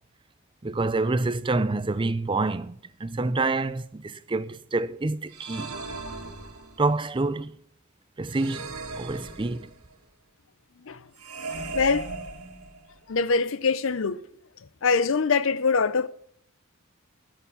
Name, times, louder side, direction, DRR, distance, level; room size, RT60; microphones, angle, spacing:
voice 1, 0.6-2.7 3.0-5.7 6.8-7.5 8.2-9.7, right 3 dB, 20° right, 0.4 m, -27 dB
sound 1, 5.3-7.0 8.3-9.9 11.2-13.0, right 3 dB, 85° right, 1.8 m, -38 dB
voice 2, 11.7-12.1 13.1-14.2 14.8-16.1, left 4 dB, 60° left, 0.6 m, -23 dB
16.5 x 6.9 x 5.6 m
head